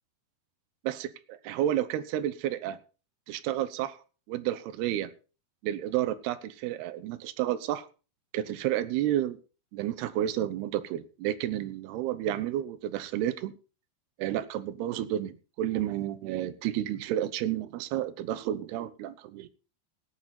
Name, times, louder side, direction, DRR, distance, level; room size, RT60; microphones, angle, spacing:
voice 1, 0.8-2.8 3.3-4.0 4.3-5.1 5.6-7.9 8.3-9.4 9.7-13.5 14.2-19.5, right 12 dB, 75° right, 2.9 m, -31 dB
17.5 x 9.2 x 4.3 m
omnidirectional pair, 4.8 m